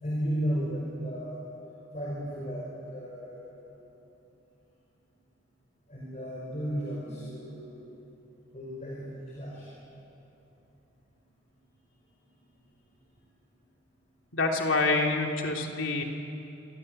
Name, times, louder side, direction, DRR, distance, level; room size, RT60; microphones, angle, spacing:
voice 1, 0.0-1.5 1.9-3.7 5.9-7.9 8.5-9.7, equal, 35° left, -4 dB, 5.4 m, -34 dB
voice 2, 14.3-16.0, left 3 dB, 80° left, 1 dB, 3.1 m, -26 dB
26.5 x 26.5 x 8.1 m, 2.9 s
head